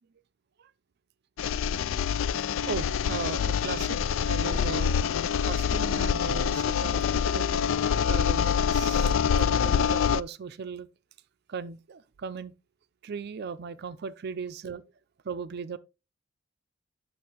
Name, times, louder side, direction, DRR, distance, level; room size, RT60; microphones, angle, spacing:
sound 1, 1.4-10.2, left 7 dB, 65° left, 0.3 m, -26 dB
voice 1, 2.7-4.9 5.4-7.6 8.1-10.9 11.5-12.5 13.0-14.8 15.2-15.8, right 5 dB, 55° right, 0.4 m, -37 dB
8.5 x 6.3 x 3.0 m
head